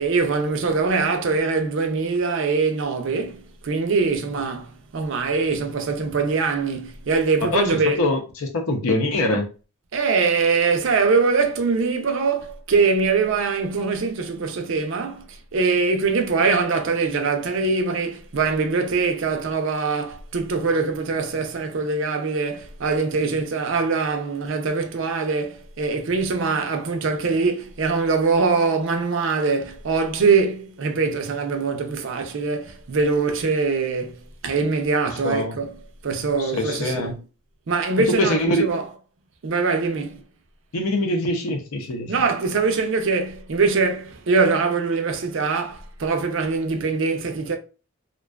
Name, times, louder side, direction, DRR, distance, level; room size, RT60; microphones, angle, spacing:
voice 1, 0.0-8.0 9.9-37.2 37.7-38.9 39.4-40.2 42.1-47.6, right 4 dB, 60° right, 0.4 m, -23 dB
voice 2, 8.0-9.4 35.2-35.6 36.4-37.1 38.2-38.7 40.7-42.1, left 1 dB, 85° left, 0.6 m, -23 dB
2.5 x 2.2 x 2.2 m
head